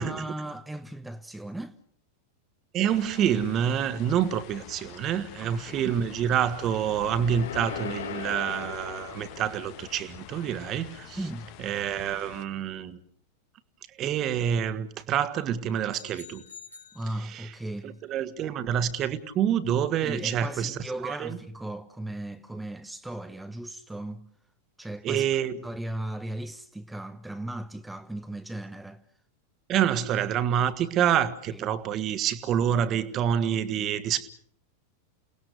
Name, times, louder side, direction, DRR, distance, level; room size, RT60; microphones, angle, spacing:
voice 1, 0.0-1.7 5.4-5.9 11.2-11.5 16.9-18.0 20.0-24.3 24.8-25.3 25.6-29.0 31.5-31.6, right 1 dB, 5° right, 0.9 m, -37 dB
voice 2, 2.7-11.2 11.6-13.0 14.0-16.4 17.2-17.5 17.8-21.4 25.0-25.6 29.7-34.3, right 9 dB, 35° right, 1.7 m, -27 dB
sound 1, 2.9-12.4, left 11 dB, 45° left, 1.6 m, -47 dB
sound 2, 6.3-10.6, left 8 dB, 60° left, 1.5 m, -39 dB
sound 3, 15.9-17.7, left 5 dB, 85° left, 4.6 m, -49 dB
29.5 x 19.0 x 6.7 m
figure-of-eight pair, 90°, 0 cm